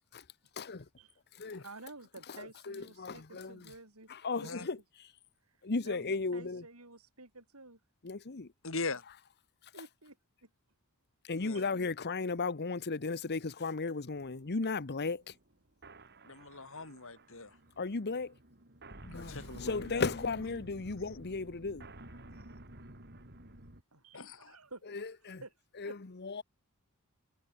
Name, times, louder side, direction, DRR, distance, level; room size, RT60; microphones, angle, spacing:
voice 1, 1.6-4.1 4.4-4.7 5.8-7.8 8.9-9.0 9.7-10.2 10.4-10.5 11.5-11.7 15.0-15.4 23.9-24.8 25.1-25.5 25.8-26.0, right 3 dB, 75° right, 7.6 m, -52 dB
voice 2, 2.7-3.5 4.2-4.7 5.6-6.6 8.0-8.5 11.3-15.2 17.8-18.3 19.0-21.8 25.3-25.4 25.8-25.9 26.4-26.5, left 4 dB, 50° left, 0.9 m, -35 dB
voice 3, 8.6-9.0 11.4-11.6 16.2-17.5 19.1-20.3 24.1-24.6, left 3 dB, 65° left, 4.5 m, -41 dB
sound 1, 14.1-23.8, right 1 dB, 50° right, 5.1 m, -52 dB
head